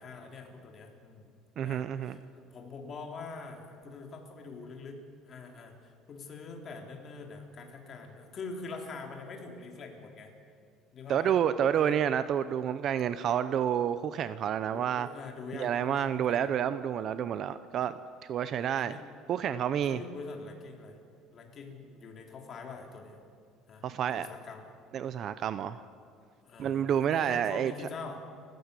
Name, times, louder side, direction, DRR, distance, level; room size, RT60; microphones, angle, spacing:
voice 1, 0.0-1.3 1.6-10.3 10.9-11.4 11.8-12.0 14.7-16.5 18.8-19.1 19.8-21.0 21.3-23.2 23.7-24.7 26.4-28.3, left 4 dB, 30° left, 2 dB, 3.6 m, -44 dB
voice 2, 1.6-2.2 11.1-15.1 15.5-18.0 18.3-19.0 19.3-20.0 23.8-24.3 24.9-25.8 26.6-27.7, right 9 dB, 40° right, 13 dB, 0.7 m, -29 dB
30.0 x 16.0 x 8.3 m, 2.4 s
cardioid pair, 165°, 0 cm